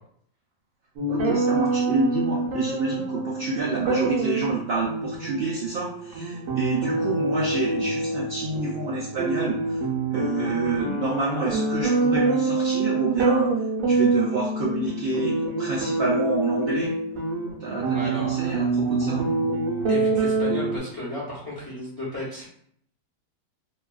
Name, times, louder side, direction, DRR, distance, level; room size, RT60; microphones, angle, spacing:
sound 1, 1.0-20.8, right 3 dB, 65° right, 0.9 m, -26 dB
voice 1, 1.1-9.8 10.1-13.5 13.8-16.9 17.6-19.2, right 3 dB, 85° right, -5 dB, 0.5 m, -28 dB
voice 2, 17.9-18.6 19.9-22.4, equal, 20° left, -7 dB, 0.6 m, -34 dB
2.7 x 2.3 x 2.3 m, 0.65 s
omnidirectional pair, 1.6 m